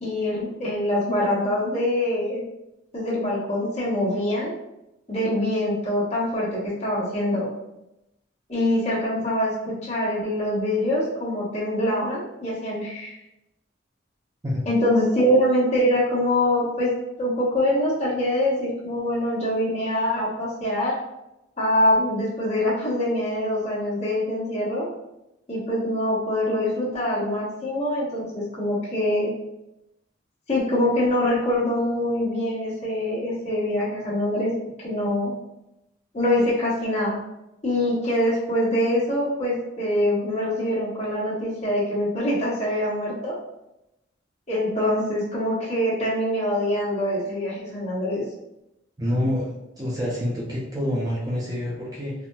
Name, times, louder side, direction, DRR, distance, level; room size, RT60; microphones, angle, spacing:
voice 1, 0.0-2.4 2.9-4.5 5.1-7.5 8.5-13.1 14.7-16.9 17.2-21.0 21.6-24.9 25.5-29.3 30.5-34.5 34.8-35.4 36.1-37.2 37.6-43.3 44.5-48.2, left 1 dB, 35° left, -8 dB, 1.1 m, -24 dB
voice 2, 49.0-52.1, left 1 dB, 20° right, -5 dB, 0.4 m, -27 dB
4.0 x 2.1 x 2.2 m, 0.89 s
head